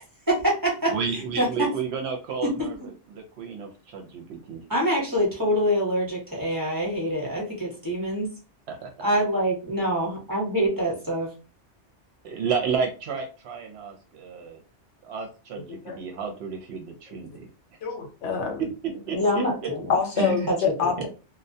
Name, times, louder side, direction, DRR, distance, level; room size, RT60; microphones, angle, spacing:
voice 1, 0.3-0.9 1.4-1.7 2.4-2.7 4.7-8.3 9.0-11.3 19.1-19.9 20.5-20.6 20.8-21.0, equal, 20° right, -5 dB, 0.8 m, -25 dB
voice 2, 0.9-4.6 8.7-8.9 12.2-14.6 15.0-17.5 18.6-19.7 20.2-20.5, right 5 dB, 70° right, 3 dB, 0.8 m, -31 dB
voice 3, 17.8-18.6 19.1-19.2 19.9-21.1, left 6 dB, 70° left, 3 dB, 0.9 m, -26 dB
2.2 x 2.1 x 2.6 m, 0.34 s
omnidirectional pair, 1.2 m